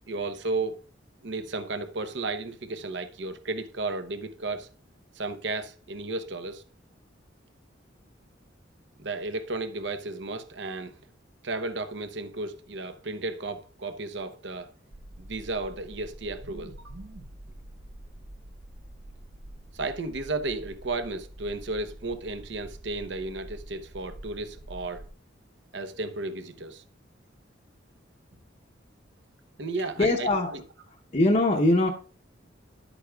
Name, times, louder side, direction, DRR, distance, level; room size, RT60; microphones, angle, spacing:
voice 1, 0.1-0.8 1.2-4.7 5.1-6.6 9.0-11.0 11.4-14.7 15.2-17.3 19.7-25.0 25.7-26.8 29.6-30.6, right 3 dB, 65° right, 0.8 m, -34 dB
sound 1, 14.9-25.1, right 1 dB, 35° right, 0.5 m, -46 dB
voice 2, 29.7-30.5 31.1-31.9, left 1 dB, 35° left, 0.8 m, -22 dB
11.0 x 8.2 x 2.3 m
head